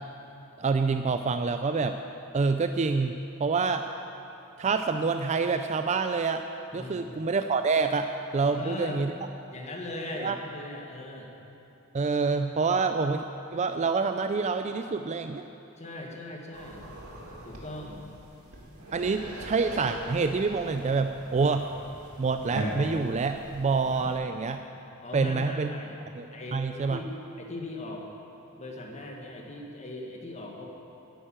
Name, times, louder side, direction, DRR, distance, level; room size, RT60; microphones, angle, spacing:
voice 1, 0.6-2.0 2.3-3.1 3.4-3.8 4.6-6.4 6.7-8.1 8.3-9.1 10.2-10.4 11.9-13.2 13.5-15.4 18.9-21.7 22.2-24.6 25.1-25.7 26.2-27.0, right 4 dB, 30° right, 7 dB, 0.4 m, -27 dB
voice 2, 6.7-7.1 8.4-9.0 9.5-11.3 15.8-16.8 17.4-18.1 25.0-26.0 26.3-27.1 27.4-28.1 28.6-30.7, left 1 dB, 30° left, 0 dB, 1.7 m, -39 dB
sound 1, 16.5-24.1, right 1 dB, 75° right, 2.2 m, -40 dB
11.0 x 9.3 x 8.9 m, 2.9 s
head